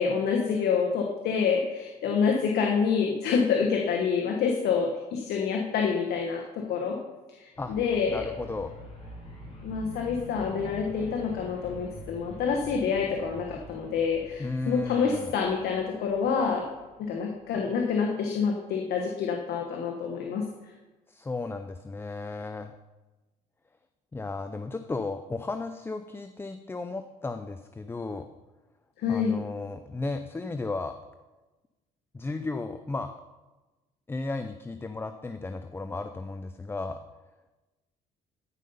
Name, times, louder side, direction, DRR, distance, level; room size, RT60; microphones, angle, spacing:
voice 1, 0.0-7.0 7.3-8.2 9.6-16.6 17.0-20.5 29.0-29.4, left 6 dB, 70° left, 1 dB, 1.3 m, -27 dB
sound 1, 7.5-17.5, equal, 35° left, 3.7 m, -45 dB
voice 2, 8.1-8.8 14.4-15.3 21.1-22.7 24.1-28.3 29.1-30.9 32.1-33.1 34.1-37.0, left 3 dB, 15° left, 8 dB, 0.5 m, -34 dB
13.5 x 5.6 x 5.4 m, 1.1 s
cardioid pair, 110°, 17 cm